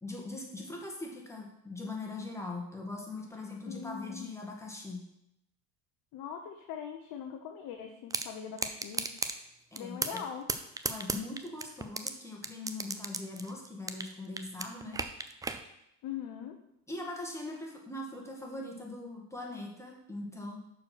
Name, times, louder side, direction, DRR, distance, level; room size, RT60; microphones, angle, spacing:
voice 1, 0.0-5.0 9.7-10.2 10.8-15.0 16.9-20.6, left 2 dB, 5° left, -1 dB, 1.8 m, -41 dB
voice 2, 3.7-4.4 6.1-9.1 9.8-10.5 16.0-16.6, left 8 dB, 50° left, 3 dB, 0.9 m, -41 dB
sound 1, 8.1-8.3 8.6-9.3 9.8-10.2 10.5-12.1 12.4-14.1 14.4-15.6, right 3 dB, 10° right, 0.3 m, -33 dB
6.2 x 4.7 x 6.0 m, 0.81 s
supercardioid pair, 95°, 44 cm